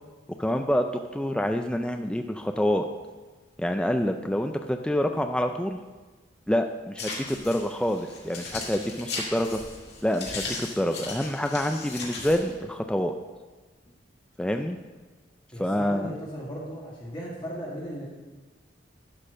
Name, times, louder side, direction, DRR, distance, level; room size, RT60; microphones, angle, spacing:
voice 1, 0.4-2.9 3.6-5.8 6.5-9.6 10.0-13.2 14.4-14.8 15.6-16.1, equal, 5° left, 5 dB, 0.3 m, -27 dB
sound 1, 7.0-12.5, left 3 dB, 55° left, 2.3 m, -37 dB
voice 2, 15.5-18.1, equal, 25° left, -5 dB, 1.8 m, -37 dB
12.0 x 4.4 x 6.4 m, 1.3 s
head